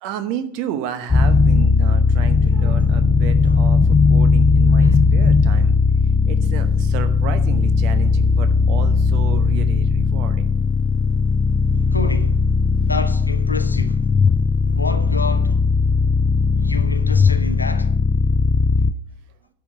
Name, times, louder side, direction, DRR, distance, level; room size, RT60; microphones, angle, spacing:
voice 1, 0.0-5.8 6.3-10.5, right 9 dB, 45° right, 0.9 m, -32 dB
sound 1, 1.1-18.9, left 4 dB, 15° left, 0.3 m, -17 dB
voice 2, 2.4-3.7 4.8-5.1 11.7-14.2 14.6-15.6 16.5-18.0, left 3 dB, 80° left, 0.8 m, -30 dB
10.5 x 4.5 x 8.0 m
figure-of-eight pair, 90°, 0 cm